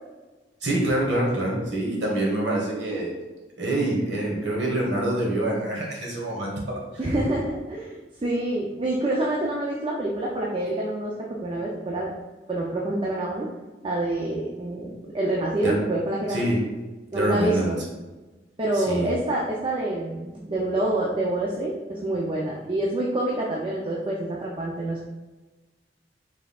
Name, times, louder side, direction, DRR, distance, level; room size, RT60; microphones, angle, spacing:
voice 1, 0.6-3.1 3.6-6.8 15.6-15.7 16.3-16.6 17.1-17.7 18.7-19.1, right 1 dB, 85° right, -3 dB, 1.4 m, -25 dB
voice 2, 7.0-11.1 11.4-12.1 12.5-13.5 13.8-16.5 17.1-17.8 18.6-25.1, right 1 dB, 30° right, -3 dB, 0.5 m, -27 dB
5.5 x 3.6 x 2.3 m, 1.2 s
head